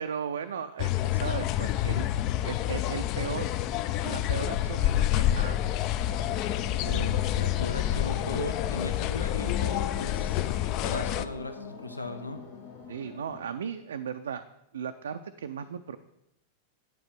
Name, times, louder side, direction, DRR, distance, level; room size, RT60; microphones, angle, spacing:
voice 1, 0.0-2.1 2.4-3.5 4.0-5.6 12.9-14.4 14.7-16.0, right 7 dB, 65° right, 8 dB, 0.4 m, -36 dB
sound 1, 0.8-11.3, left 12 dB, 40° left, 0.4 m, -28 dB
sound 2, 6.1-13.4, left 4 dB, 65° left, 1.6 m, -44 dB
voice 2, 6.7-10.5 10.8-12.4, left 1 dB, 85° left, 7 dB, 0.7 m, -37 dB
8.9 x 5.3 x 6.0 m, 0.83 s
figure-of-eight pair, 90°, 0 cm